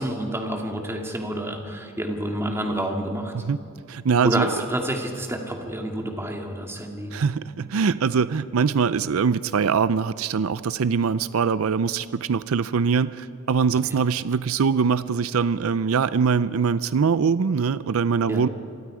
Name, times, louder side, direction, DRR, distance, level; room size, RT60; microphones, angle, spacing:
voice 1, 0.0-3.3 4.2-7.1 13.9-14.0 18.3-18.5, right 1 dB, 10° right, 2 dB, 2.1 m, -28 dB
voice 2, 3.9-4.5 7.1-18.5, right 5 dB, 80° right, 15 dB, 0.5 m, -23 dB
27.5 x 23.0 x 4.9 m, 2.3 s
head